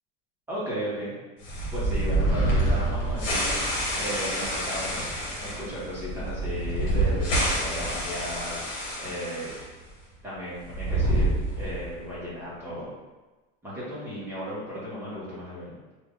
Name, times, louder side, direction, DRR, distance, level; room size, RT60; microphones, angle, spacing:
voice 1, 0.5-1.1 1.7-3.6 3.9-5.1 5.6-8.6 9.0-9.5 10.2-12.9 13.6-15.8, equal, 5° right, -10 dB, 1.0 m, -35 dB
sound 1, 1.4-9.6 9.9-10.0 10.6-12.0, right 1 dB, 65° left, 1.2 m, -27 dB
3.3 x 2.3 x 3.7 m, 1.2 s
cardioid pair, 175°, 30 cm